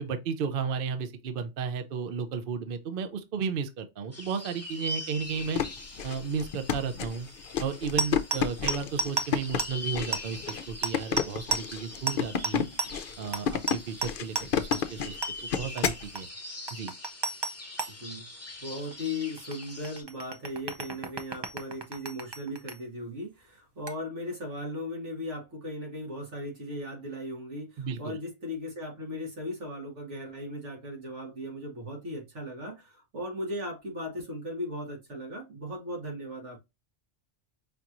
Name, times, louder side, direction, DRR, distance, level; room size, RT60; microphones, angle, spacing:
voice 1, 0.0-5.6 6.0-7.3 7.6-12.7 13.2-16.3 16.7-16.9 27.8-28.2, right 6 dB, 60° right, 0.7 m, -33 dB
sound 1, 4.1-20.0, left 2 dB, 15° left, 0.9 m, -43 dB
sound 2, 5.3-16.1, left 8 dB, 60° left, 0.7 m, -31 dB
sound 3, 8.0-9.3 9.6-9.7 10.0-10.2 10.5-10.6 10.8-11.3 11.5-11.6 12.1-12.2 12.4-12.5 12.8-12.9 13.3-13.4 13.7-14.1 14.3-14.4 14.7-14.8 15.2-15.3 15.8-15.9 16.1-16.2 16.7-17.9 18.9-19.0 19.4-22.8 23.9-24.0, right 3 dB, 35° right, 0.4 m, -31 dB
voice 2, 17.9-18.3 18.6-36.6, left 1 dB, 85° right, 1.9 m, -37 dB
5.2 x 2.9 x 2.4 m
omnidirectional pair, 1.2 m